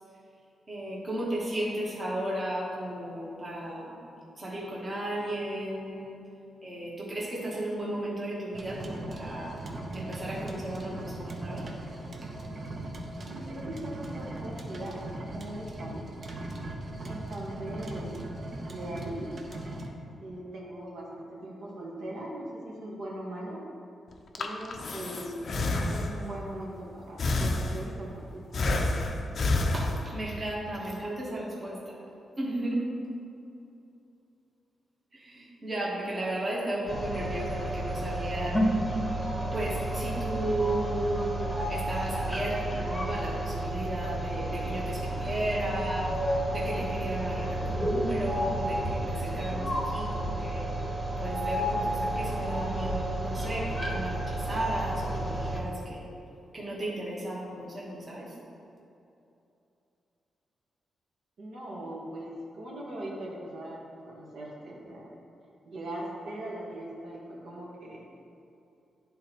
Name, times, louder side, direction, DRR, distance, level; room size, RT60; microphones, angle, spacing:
voice 1, 0.7-4.0 4.4-6.1 6.6-9.6 9.9-11.7 29.7-32.0 32.4-32.9 35.1-38.6 39.5-41.3 41.7-50.6 51.2-56.0 56.5-58.3, right 1 dB, 25° right, -6 dB, 1.2 m, -34 dB
sound 1, 8.5-19.9, right 1 dB, 40° right, 0.7 m, -39 dB
voice 2, 13.3-16.1 17.1-18.2 18.7-19.3 20.2-23.6 24.4-25.4 25.7-29.1 61.4-65.1 65.6-68.0, right 1 dB, 70° right, -4 dB, 1.4 m, -40 dB
Breathing, 24.1-26.4 27.2-28.1 28.5-30.4, left 2 dB, 45° left, 0.5 m, -29 dB
sound 2, 36.9-55.6, right 1 dB, 10° left, 1.0 m, -31 dB
11.0 x 3.9 x 3.0 m, 2.8 s
wide cardioid pair, 150°, 0 cm